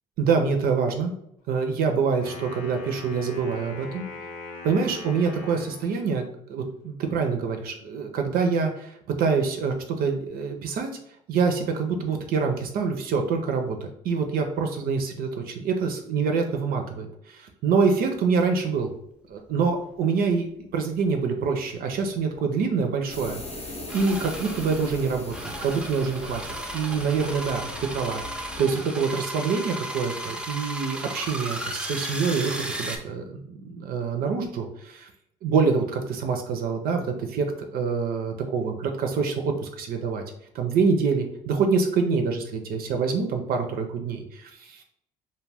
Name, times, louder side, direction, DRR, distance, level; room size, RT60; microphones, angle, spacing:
voice 1, 0.2-1.1 1.5-4.0 4.6-10.9 11.3-13.8 14.0-18.9 19.3-25.3 25.6-26.4 26.7-28.2 28.6-35.1 35.4-37.5 37.7-40.2 40.5-44.8, right 5 dB, 60° right, 4 dB, 0.4 m, -26 dB
Wind instrument woodwind instrument, 2.1-6.1, left 3 dB, 90° left, 0.6 m, -41 dB
sound 1, 21.7-21.8 22.1-22.2 23.9-33.0, right 1 dB, 5° right, 0.5 m, -35 dB
sound 2, 23.1-28.6, left 2 dB, 40° left, 0.7 m, -39 dB
2.2 x 2.1 x 3.3 m, 0.74 s
hypercardioid pair, 60°, 17 cm